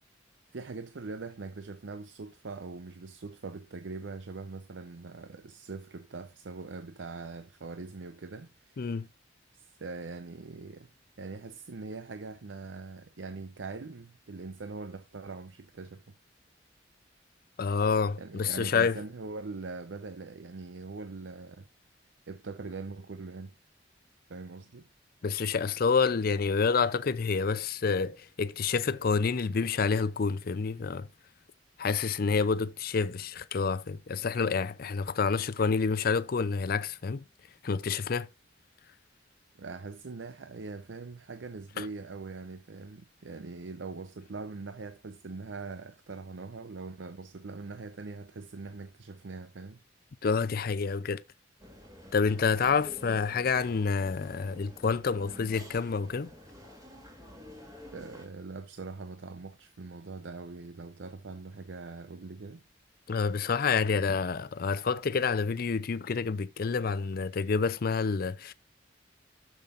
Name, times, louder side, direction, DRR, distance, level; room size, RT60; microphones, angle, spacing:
voice 1, 0.5-9.0 9.5-10.9 11.2-16.1 18.2-21.7 22.3-23.5 24.3-24.9 39.6-49.8 57.9-62.6, right 3 dB, 85° right, 0.6 m, -42 dB
voice 2, 8.8-9.1 17.6-19.0 25.2-31.1 31.8-37.2 37.6-38.3 41.8-41.9 50.2-51.2 52.1-56.3 63.1-68.5, left 5 dB, 55° left, 0.5 m, -28 dB
sound 1, 51.6-58.3, equal, 20° right, 2.8 m, -49 dB
12.0 x 7.3 x 2.5 m
head